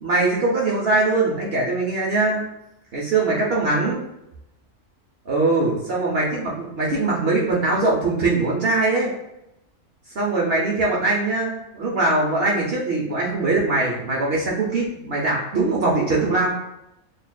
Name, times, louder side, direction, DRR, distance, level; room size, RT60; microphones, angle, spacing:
voice 1, 0.0-2.4 2.9-4.0 5.3-9.1 10.1-16.5, right 2 dB, 55° right, -3 dB, 0.8 m, -21 dB
6.7 x 2.5 x 2.2 m, 0.85 s
omnidirectional pair, 1.5 m